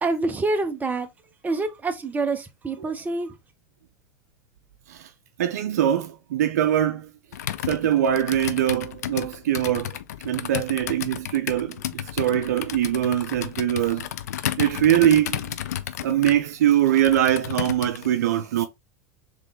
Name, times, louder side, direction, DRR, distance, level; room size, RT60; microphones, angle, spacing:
voice 1, 0.0-1.1 1.4-3.3, right 3 dB, 20° right, 1.0 m, -26 dB
voice 2, 5.4-7.1 7.7-10.0 10.2-14.1 14.6-15.6 16.0-18.7, right 11 dB, 85° right, 0.5 m, -22 dB
Computer keyboard, 7.3-18.1, left 11 dB, 90° left, 0.5 m, -32 dB
3.8 x 3.2 x 3.5 m
hypercardioid pair, 100°, 9 cm